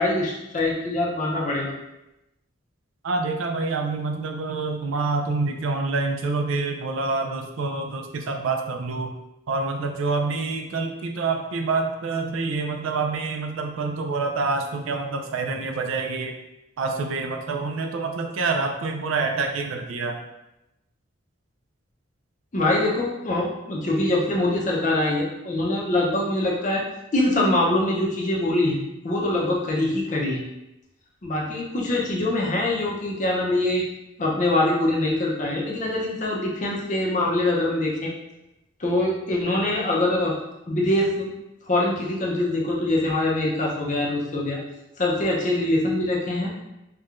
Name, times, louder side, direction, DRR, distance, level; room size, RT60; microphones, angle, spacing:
voice 1, 0.0-1.7 22.5-26.8 27.1-30.4 31.2-33.9 34.2-38.1 38.8-40.4 40.7-41.3 41.7-44.6 45.0-46.5, left 1 dB, 40° left, -2 dB, 0.6 m, -24 dB
voice 2, 3.0-9.2 9.5-16.4 16.8-20.2, right 3 dB, 80° right, 4 dB, 0.4 m, -27 dB
4.4 x 2.2 x 2.4 m, 0.92 s
head